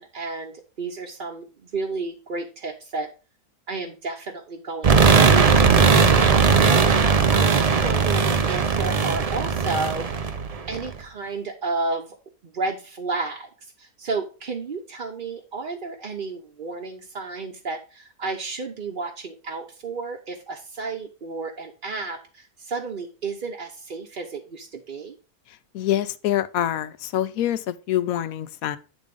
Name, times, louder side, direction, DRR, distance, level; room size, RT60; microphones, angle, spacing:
voice 1, 0.0-3.1 3.7-6.9 7.3-10.1 10.7-12.2 12.4-13.5 13.8-25.2, right 3 dB, 45° right, 0.8 m, -32 dB
sound 1, 4.8-10.9, right 5 dB, 75° right, 0.3 m, -18 dB
voice 2, 25.7-28.8, left 12 dB, 75° left, 1.0 m, -25 dB
8.9 x 3.6 x 5.2 m
omnidirectional pair, 1.6 m